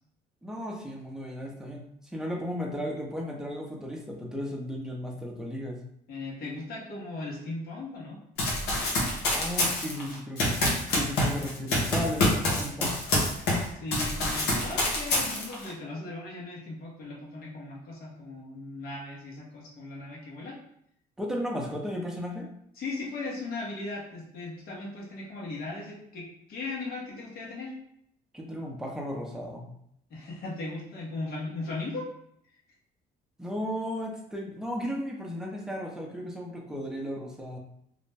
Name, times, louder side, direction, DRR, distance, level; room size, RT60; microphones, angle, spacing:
voice 1, 0.4-5.8 9.3-13.0 21.2-22.5 28.3-29.7 33.4-37.6, equal, 5° right, -1 dB, 0.5 m, -35 dB
voice 2, 6.1-8.2 13.7-20.6 22.8-27.7 30.1-32.1, left 2 dB, 65° left, -3 dB, 1.0 m, -37 dB
Run, 8.4-13.7 13.9-15.7, left 1 dB, 90° left, 0.8 m, -26 dB
2.5 x 2.1 x 3.2 m, 0.73 s
cardioid pair, 110°, 17 cm